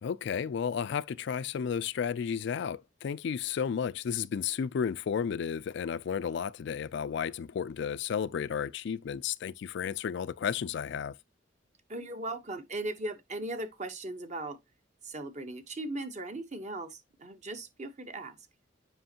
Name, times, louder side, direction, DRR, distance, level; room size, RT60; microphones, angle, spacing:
voice 1, 0.0-11.2, left 7 dB, 65° left, 0.3 m, -33 dB
voice 2, 11.9-14.6 15.0-18.4, right 2 dB, 40° right, 1.0 m, -38 dB
7.7 x 5.2 x 2.8 m
head